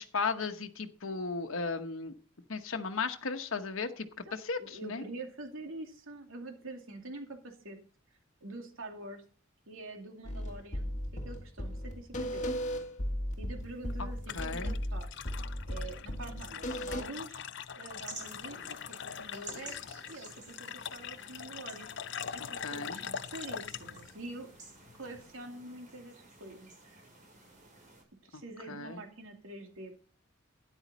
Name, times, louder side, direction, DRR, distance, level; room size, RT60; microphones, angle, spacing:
voice 1, 0.0-2.1 2.5-4.1 4.3-5.0 14.0-14.1 14.3-14.7 22.6-23.0 28.3-28.4 28.7-29.0, left 4 dB, 80° left, 6 dB, 1.0 m, -35 dB
voice 2, 4.3-7.8 8.4-9.2 9.7-12.7 13.4-15.2 15.7-17.4 17.7-18.6 18.9-19.8 20.1-21.9 22.3-24.5 25.0-27.0 28.2-30.1, right 2 dB, 85° right, 3 dB, 2.5 m, -46 dB
sound 1, 10.2-17.0, equal, 35° left, 1.8 m, -36 dB
sound 2, 13.6-25.3, left 8 dB, 60° left, 0.6 m, -43 dB
sound 3, 18.0-28.0, right 3 dB, 40° right, 6.8 m, -52 dB
12.5 x 10.0 x 4.1 m, 0.41 s
head